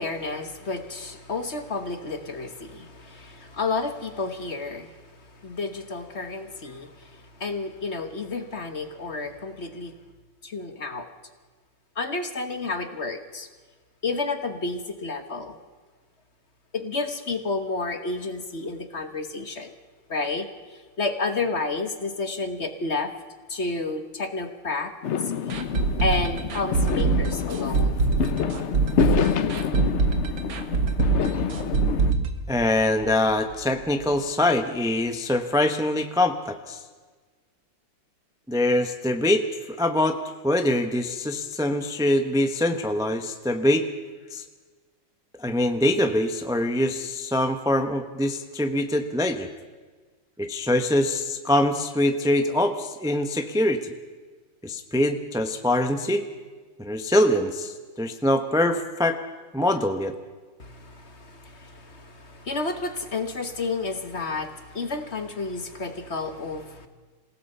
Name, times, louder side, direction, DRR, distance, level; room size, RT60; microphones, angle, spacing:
voice 1, 0.0-10.0 10.4-11.1 11.9-13.5 14.0-15.6 16.7-19.7 20.1-23.1 23.5-24.9 25.2-25.6 26.0-27.9 60.6-66.9, left 3 dB, 40° left, 8 dB, 1.3 m, -31 dB
Fireworks, 25.0-32.1, left 8 dB, 60° left, 0.7 m, -27 dB
sound 1, 25.5-33.2 33.5-33.6 34.0-34.1, right 4 dB, 75° right, 2.4 m, -24 dB
voice 2, 32.5-36.8 38.5-39.4 39.8-40.2 40.4-43.9 44.3-44.4 45.4-49.5 50.4-53.9 54.6-56.2 56.8-59.2 59.5-60.1, left 1 dB, 5° right, 6 dB, 0.6 m, -23 dB
27.0 x 17.0 x 5.6 m, 1.4 s
omnidirectional pair, 2.1 m